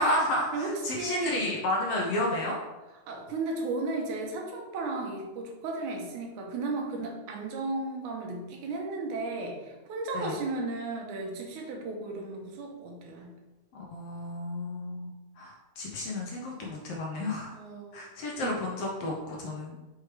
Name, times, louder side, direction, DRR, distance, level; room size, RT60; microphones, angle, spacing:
voice 1, 0.0-2.6 10.1-10.4 13.9-17.6 17.9-19.7, left 1 dB, 70° left, -2 dB, 1.5 m, -31 dB
voice 2, 0.5-1.5 3.1-13.3 17.5-18.0 18.4-18.6 19.7-19.8, right 3 dB, 75° right, 1 dB, 2.3 m, -34 dB
6.1 x 4.8 x 3.3 m, 1.1 s
omnidirectional pair, 3.7 m